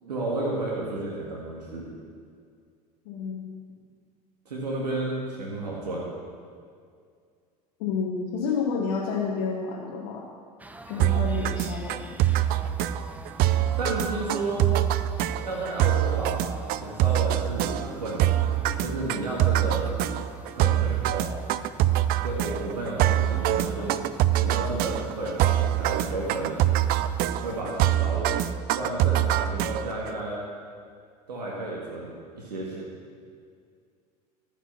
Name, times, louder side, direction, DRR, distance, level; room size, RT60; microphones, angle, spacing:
voice 1, 0.0-1.9 4.5-6.0 13.8-14.7 15.4-19.8 20.5-21.3 22.2-24.0 24.4-26.7 27.4-28.4 28.7-30.4 31.3-32.9, right 2 dB, 85° right, -4 dB, 1.8 m, -32 dB
voice 2, 3.0-3.5 7.8-10.3 10.9-12.1, left 5 dB, 65° left, -3 dB, 1.3 m, -30 dB
sound 1, 10.6-27.6, right 2 dB, 5° right, 0.7 m, -45 dB
sound 2, 11.0-30.1, right 12 dB, 50° right, 0.5 m, -25 dB
14.0 x 6.1 x 5.7 m, 2.2 s
hypercardioid pair, 80°, 21 cm